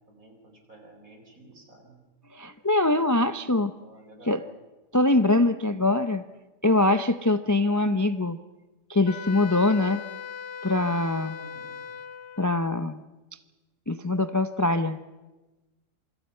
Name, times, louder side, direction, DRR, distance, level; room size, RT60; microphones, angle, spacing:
voice 1, 0.1-2.0 3.6-4.4 11.3-11.8, right 1 dB, 70° right, 3 dB, 4.9 m, -51 dB
voice 2, 2.3-3.7 4.3-4.4 4.9-6.2 6.6-8.4 8.9-10.0 10.6-11.4 12.4-13.0 13.9-15.0, left 2 dB, 25° left, 11 dB, 0.3 m, -23 dB
Wind instrument woodwind instrument, 9.1-12.5, left 6 dB, 55° left, 1.1 m, -39 dB
27.0 x 25.0 x 5.6 m, 1.2 s
omnidirectional pair, 1.5 m